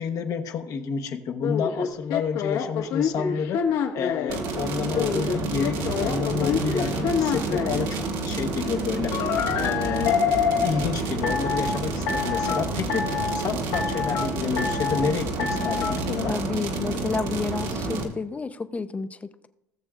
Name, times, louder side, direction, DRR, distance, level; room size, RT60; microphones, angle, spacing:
voice 1, 0.0-3.6 3.9-9.1 9.5-10.2 10.6-13.1 13.3-16.3, left 6 dB, 50° left, 4 dB, 1.0 m, -29 dB
sound 1, 1.4-4.4 4.9-7.9 9.1-10.8 11.2-11.7 12.1-12.6 12.9-13.4 13.7-14.3 14.6-15.0 15.4-15.9, left 7 dB, 75° left, 1.5 m, -26 dB
sound 2, 4.3-18.0, right 3 dB, 70° right, 1.9 m, -29 dB
voice 2, 16.3-19.5, left 4 dB, 20° left, 11 dB, 0.6 m, -30 dB
18.0 x 6.8 x 2.5 m, 0.88 s
supercardioid pair, 115°, 8 cm